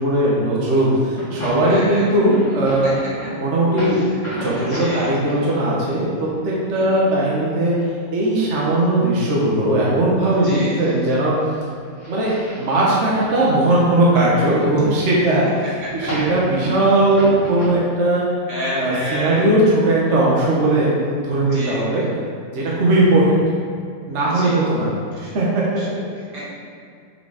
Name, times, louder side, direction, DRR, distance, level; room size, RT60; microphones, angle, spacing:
voice 1, 0.0-2.9 3.3-4.0 4.4-6.1 6.4-7.7 8.1-11.3 12.1-15.5 15.9-18.3 18.7-22.0 22.5-23.4 24.1-24.9 25.3-25.5 25.7-26.0, right 1 dB, 40° right, -5 dB, 1.4 m, -18 dB
sound 1, 0.8-5.5 5.8-5.9 6.8-7.2 7.8-8.6 8.9-9.0 9.3-9.4 9.6-9.7 9.9-10.5 10.8-13.7 14.1-14.5 14.8-17.7, left 1 dB, 25° left, 2.1 m, -33 dB
voice 2, 1.6-2.1 2.8-2.9 3.9-4.1 4.5-5.4 6.7-7.0 10.3-11.0 18.5-19.5 21.3-22.1 24.3-24.6 25.2-26.5, equal, 60° right, -7 dB, 2.5 m, -31 dB
7.1 x 4.9 x 4.9 m, 2.3 s
omnidirectional pair, 2.1 m